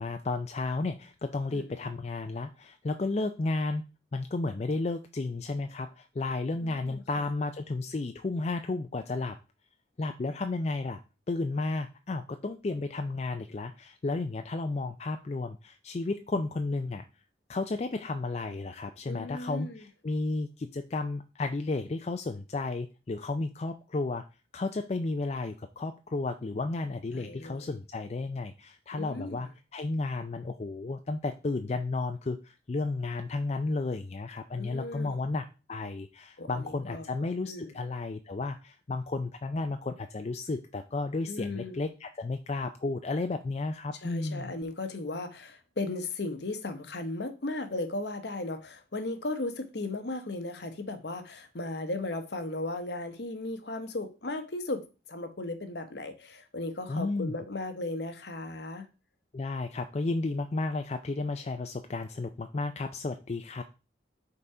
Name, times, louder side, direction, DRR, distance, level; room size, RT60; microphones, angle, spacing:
voice 1, 0.0-3.8 4.1-9.4 10.0-11.0 11.3-17.0 17.5-24.2 24.5-44.5 56.9-57.3 59.3-63.6, left 3 dB, 35° left, 0.4 m, -33 dB
voice 2, 6.8-7.3 19.1-19.8 27.1-27.7 28.9-29.4 34.6-35.1 36.4-37.1 37.5-37.7 41.3-41.8 44.0-58.9, left 2 dB, 65° left, 1.0 m, -36 dB
5.5 x 4.0 x 4.8 m
head